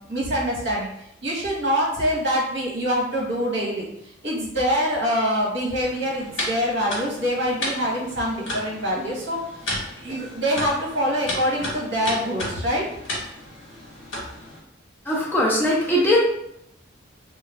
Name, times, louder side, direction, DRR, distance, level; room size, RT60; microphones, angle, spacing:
voice 1, 0.1-0.9 1.2-9.4 10.0-12.8, equal, 60° right, -3 dB, 0.9 m, -25 dB
sound 1, 5.8-14.6, left 1 dB, 80° left, 1.1 m, -33 dB
voice 2, 15.1-16.2, left 1 dB, 10° left, -5 dB, 0.5 m, -20 dB
2.3 x 2.1 x 3.4 m, 0.77 s
head